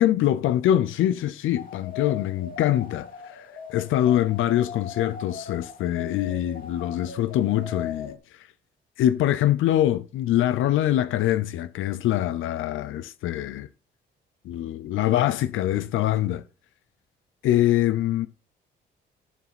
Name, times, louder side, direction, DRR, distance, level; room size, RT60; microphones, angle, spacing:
voice 1, 0.0-8.5 9.0-13.7 14.4-16.4 17.4-18.3, left 12 dB, 80° left, 0.6 m, -24 dB
sound 1, 1.6-8.1, left 6 dB, 45° left, 2.3 m, -39 dB
14.0 x 4.9 x 5.8 m
cardioid pair, 90°, 20 cm